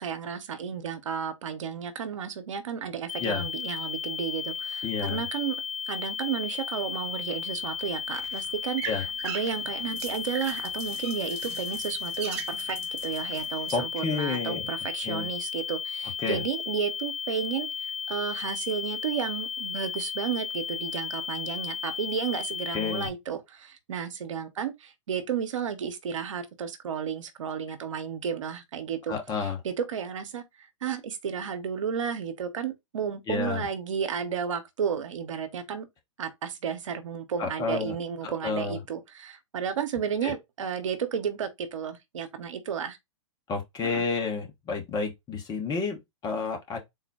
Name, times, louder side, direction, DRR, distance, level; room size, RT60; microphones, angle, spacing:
voice 1, 0.0-17.7 18.1-35.9 36.2-43.0 43.8-44.1, right 7 dB, 75° right, 0.9 m, -33 dB
sound 1, 3.1-23.1, left 7 dB, 85° left, 0.4 m, -34 dB
voice 2, 4.8-5.2 8.8-9.0 13.7-14.7 15.0-15.3 16.2-16.4 22.7-23.1 29.1-29.6 33.3-33.7 37.4-37.9 38.2-38.8 40.2-40.4 43.5-46.8, left 4 dB, 25° left, 1.0 m, -30 dB
sound 2, 7.5-13.7, right 11 dB, 55° right, 0.5 m, -42 dB
3.9 x 2.1 x 4.0 m
hypercardioid pair, 120°, 16 cm